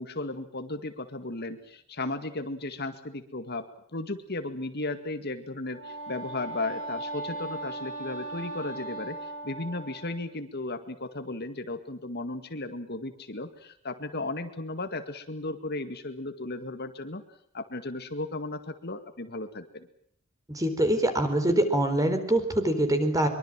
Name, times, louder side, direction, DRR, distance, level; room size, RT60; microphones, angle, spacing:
voice 1, 0.0-3.6 3.9-17.2 17.5-19.9, left 2 dB, 50° left, 8 dB, 2.1 m, -35 dB
Wind instrument woodwind instrument, 5.6-10.3, right 2 dB, 80° right, 7.4 m, -38 dB
voice 2, 20.5-23.3, right 1 dB, 15° right, 8 dB, 4.3 m, -24 dB
24.0 x 24.0 x 7.6 m, 0.65 s
head